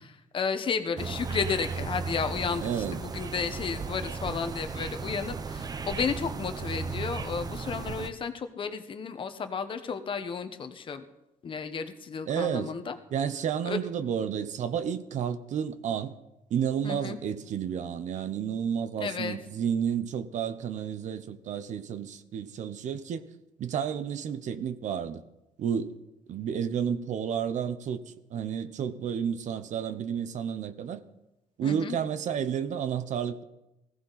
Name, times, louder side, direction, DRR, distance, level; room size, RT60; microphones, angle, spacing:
voice 1, 0.3-11.0 11.4-13.0 13.6-13.8 16.8-17.2 19.0-19.4 31.6-32.0, left 5 dB, 35° left, 1.2 m, -32 dB
sound 1, 1.0-8.1, right 5 dB, 25° right, 0.7 m, -35 dB
voice 2, 2.6-3.0 12.3-12.7 13.1-16.1 16.5-23.3 23.6-25.2 25.6-26.0 26.3-31.0 31.6-33.4, right 8 dB, 55° right, 0.9 m, -31 dB
19.0 x 15.5 x 4.1 m
cardioid pair, 140°, 15 cm